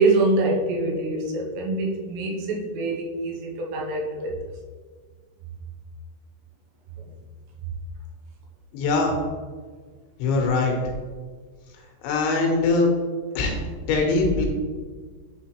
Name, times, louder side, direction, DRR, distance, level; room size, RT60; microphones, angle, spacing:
voice 1, 0.0-4.3, right 2 dB, 85° right, -1 dB, 3.0 m, -24 dB
voice 2, 8.7-9.2 10.2-10.8 12.0-12.9 13.4-13.6 13.9-14.5, left 3 dB, 85° left, 1 dB, 3.4 m, -21 dB
9.9 x 3.9 x 3.0 m, 1.5 s
omnidirectional pair, 5.0 m